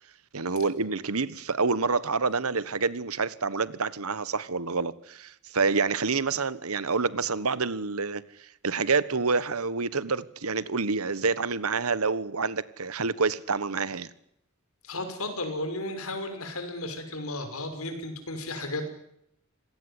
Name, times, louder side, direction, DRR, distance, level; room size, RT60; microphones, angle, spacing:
voice 1, 0.3-14.1, right 4 dB, 75° right, 1.3 m, -28 dB
voice 2, 14.8-18.9, left 1 dB, 70° left, 5.9 m, -34 dB
26.5 x 18.0 x 9.9 m
head